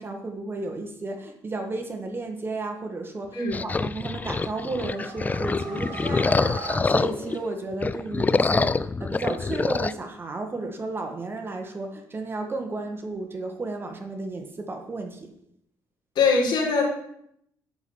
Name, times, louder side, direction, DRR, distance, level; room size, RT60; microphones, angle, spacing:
voice 1, 0.0-15.3, right 2 dB, 25° right, 4 dB, 1.6 m, -33 dB
sound 1, 3.5-7.4 7.7-9.9, left 4 dB, 20° left, 0.4 m, -25 dB
sound 2, 4.1-7.9, right 3 dB, 75° right, 4.9 m, -40 dB
voice 2, 16.2-16.8, left 4 dB, 70° left, -1 dB, 4.1 m, -21 dB
10.5 x 4.9 x 7.0 m, 0.73 s
cardioid pair, 105°, 8 cm